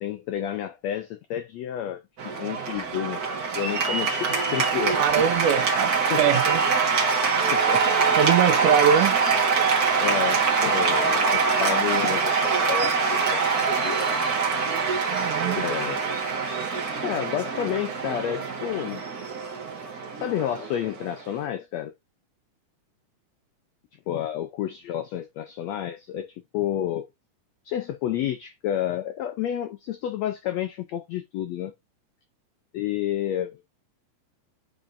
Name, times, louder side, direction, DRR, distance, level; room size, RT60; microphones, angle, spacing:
voice 1, 0.0-5.2 6.1-6.4 7.5-8.0 10.0-13.9 15.6-16.1 17.0-19.0 20.2-21.9 24.1-27.1 27.6-31.7 32.7-33.6, left 11 dB, 85° left, 1.5 m, -30 dB
Cheering / Applause, 2.2-21.4, right 5 dB, 45° right, 1.2 m, -24 dB
voice 2, 4.9-6.6 8.2-9.2 15.1-15.6, right 9 dB, 80° right, 2.1 m, -23 dB
8.6 x 5.4 x 2.6 m
omnidirectional pair, 3.9 m